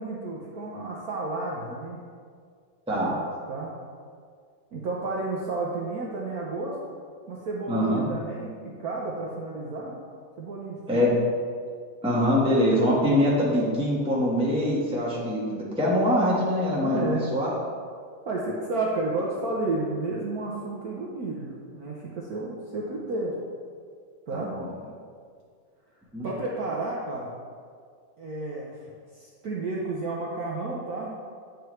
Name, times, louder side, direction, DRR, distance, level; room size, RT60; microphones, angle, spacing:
voice 1, 0.0-2.0 3.5-3.7 4.7-6.8 7.3-10.0 10.4-11.1 16.8-17.3 18.2-23.3 24.3-24.5 26.2-27.3 28.2-28.8 29.1-31.1, right 2 dB, 60° right, -4 dB, 1.0 m, -31 dB
voice 2, 7.7-8.1 10.9-11.1 12.0-17.5 24.3-24.7 26.1-26.3, equal, 5° right, -5 dB, 0.9 m, -24 dB
9.2 x 4.7 x 3.1 m, 2.1 s
omnidirectional pair, 2.2 m